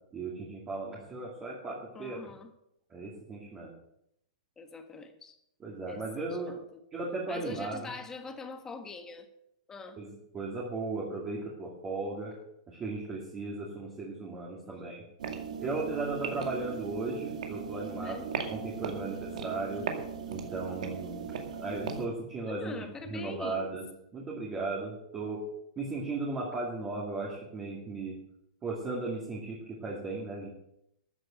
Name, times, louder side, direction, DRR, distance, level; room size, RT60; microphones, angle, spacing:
voice 1, 0.1-2.2 2.9-3.7 5.6-6.6 6.9-7.9 10.0-12.3 12.7-15.0 15.6-18.2 18.5-19.9 20.3-21.2 21.6-23.9 24.1-25.4 25.8-28.2 28.6-30.5, right 3 dB, 20° right, -4 dB, 2.5 m, -36 dB
voice 2, 1.9-2.5 4.6-5.4 5.9-6.8 7.3-9.3 9.7-10.0 14.7-14.8 17.9-18.3 22.4-23.7, left 4 dB, 15° left, 7 dB, 1.4 m, -43 dB
sound 1, 15.2-22.1, right 6 dB, 75° right, 2.2 m, -38 dB
13.5 x 8.0 x 6.4 m, 0.78 s
hypercardioid pair, 150°, 4 cm